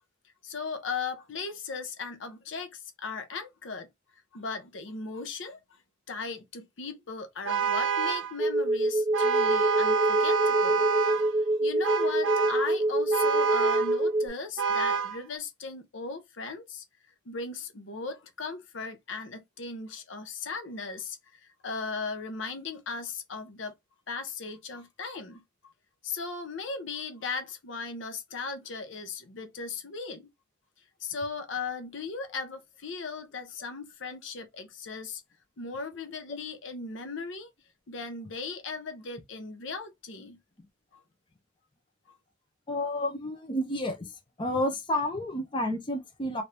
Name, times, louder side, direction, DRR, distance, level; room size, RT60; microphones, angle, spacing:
voice 1, 0.4-3.9 4.3-5.6 6.1-10.9 11.6-16.8 17.3-23.7 24.1-25.7 26.0-30.3 31.0-35.2 35.6-37.5 37.9-40.4, left 4 dB, 70° left, 0.7 m, -37 dB
Vehicle horn car horn honking, 7.5-8.3 9.1-11.3 11.8-12.7 13.1-14.0 14.6-15.2, right 6 dB, 70° right, 0.5 m, -27 dB
sound 1, 8.4-14.3, right 1 dB, 5° left, 1.4 m, -26 dB
voice 2, 42.7-44.1 44.4-46.4, left 1 dB, 25° left, 0.6 m, -30 dB
2.9 x 2.6 x 3.3 m
head